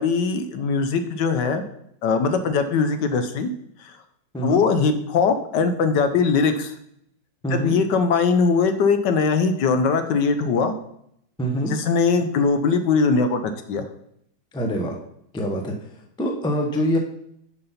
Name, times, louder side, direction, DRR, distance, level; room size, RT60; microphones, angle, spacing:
voice 1, 0.0-1.6 2.0-3.5 3.8-3.9 4.4-6.7 7.5-10.7 11.7-13.8, left 5 dB, 70° left, 8 dB, 1.2 m, -21 dB
voice 2, 4.3-4.6 7.4-7.8 11.4-11.7 14.5-15.0 15.3-15.9 16.2-17.0, equal, 5° left, 2 dB, 0.4 m, -24 dB
6.7 x 5.5 x 5.6 m, 0.72 s
omnidirectional pair, 2.1 m